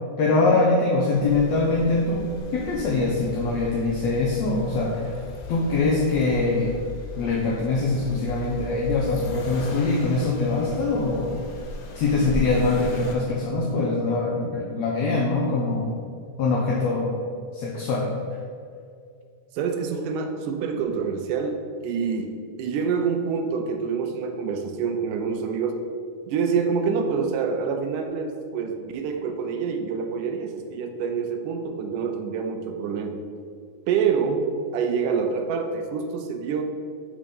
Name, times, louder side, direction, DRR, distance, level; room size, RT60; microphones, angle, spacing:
voice 1, 0.2-5.1 5.5-6.7 7.2-11.3 11.9-16.0 16.4-17.1 17.5-18.1, left 3 dB, 75° left, -2 dB, 1.7 m, -23 dB
Accelerating revving vroom, 1.2-13.1, left 2 dB, 90° left, 2.6 m, -36 dB
voice 2, 19.5-22.3 22.6-25.8 26.3-33.2 33.9-36.6, right 6 dB, 80° right, 5 dB, 2.1 m, -26 dB
8.3 x 3.7 x 5.2 m, 2.3 s
omnidirectional pair, 3.8 m